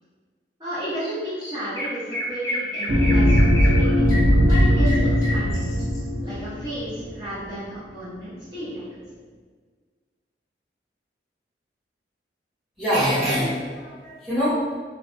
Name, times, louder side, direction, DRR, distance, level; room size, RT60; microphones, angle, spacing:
voice 1, 0.6-4.1 4.4-5.5 6.2-8.8, right 1 dB, 25° right, -12 dB, 0.7 m, -33 dB
Chirp tweet, 1.0-1.1 1.4-6.0, left 1 dB, 20° left, 0.5 m, -30 dB
sound 1, 2.9-7.1, equal, 45° right, 0.3 m, -19 dB
voice 2, 12.8-14.8, equal, ahead, -11 dB, 1.1 m, -24 dB
3.2 x 2.2 x 2.5 m, 1.5 s
head